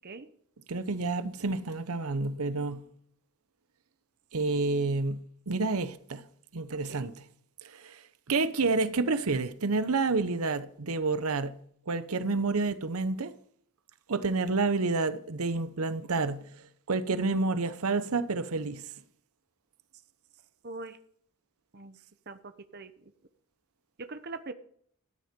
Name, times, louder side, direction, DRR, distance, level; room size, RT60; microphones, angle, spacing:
voice 1, 0.7-2.8 4.3-5.2 5.5-6.2 6.5-7.2 7.6-8.0 8.3-11.5 11.9-13.3 14.1-16.5 16.9-18.9, right 3 dB, 80° right, 0.9 m, -29 dB
voice 2, 6.7-7.1 20.6-21.0 21.7-22.0 22.3-22.9 24.0-24.5, right 3 dB, 45° right, 0.9 m, -42 dB
13.5 x 9.4 x 5.2 m
head